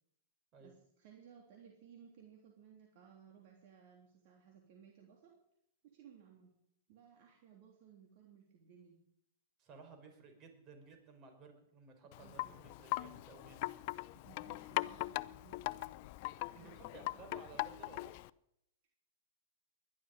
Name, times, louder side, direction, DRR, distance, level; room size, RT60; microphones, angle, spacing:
voice 1, 0.6-5.3 5.8-6.5 6.9-9.0 12.0-12.6 14.1-15.7 16.5-17.4, right 7 dB, 55° right, 1 dB, 3.2 m, -60 dB
voice 2, 9.6-13.7 16.3-18.1, right 4 dB, 35° right, 6 dB, 5.0 m, -57 dB
Wind chime, 12.1-18.3, left 19 dB, 50° left, 0.5 m, -41 dB
20.5 x 12.0 x 5.3 m, 0.75 s
hypercardioid pair, 110°, 0 cm